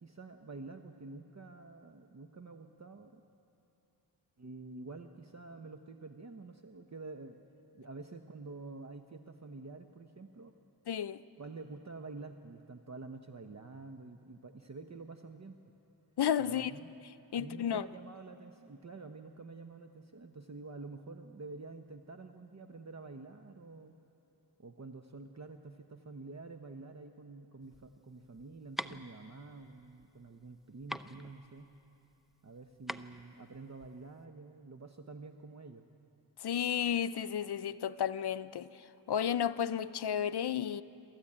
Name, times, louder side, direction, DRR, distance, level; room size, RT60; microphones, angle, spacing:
voice 1, 0.0-3.2 4.4-7.4 7.7-10.5 11.4-15.6 16.4-16.9 17.3-23.9 24.6-31.7 32.4-35.8, right 3 dB, 40° right, 1.0 m, -48 dB
voice 2, 10.9-11.2 16.2-16.7 17.3-17.8 36.4-40.8, left 9 dB, 70° left, 0.7 m, -32 dB
sound 1, 27.6-34.2, equal, ahead, 0.6 m, -45 dB
28.0 x 13.5 x 8.7 m
cardioid pair, 55°, 41 cm